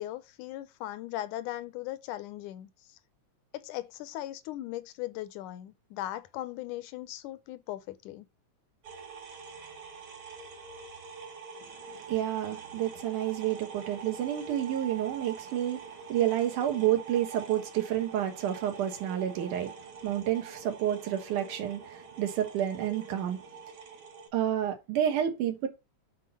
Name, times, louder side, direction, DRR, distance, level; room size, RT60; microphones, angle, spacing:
voice 1, 0.0-2.7 3.5-8.3, left 14 dB, 85° left, 2.2 m, -38 dB
sound 1, 8.8-24.3, right 5 dB, 65° right, 3.4 m, -45 dB
voice 2, 11.6-19.7 20.0-23.4 24.3-25.7, right 11 dB, 85° right, 2.9 m, -30 dB
7.4 x 4.1 x 5.3 m
omnidirectional pair, 3.5 m